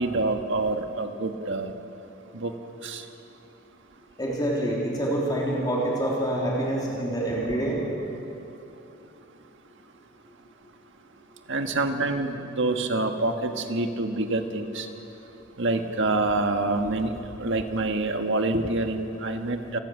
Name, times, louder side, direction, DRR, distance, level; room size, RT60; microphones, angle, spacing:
voice 1, 0.0-1.7 2.3-2.5 2.8-3.0 11.5-14.9 15.6-17.1 17.4-19.8, right 2 dB, 60° right, 5 dB, 1.6 m, -26 dB
voice 2, 4.2-7.8 11.5-11.6, right 1 dB, 20° left, -4 dB, 3.5 m, -26 dB
28.5 x 18.0 x 6.5 m, 2.8 s
head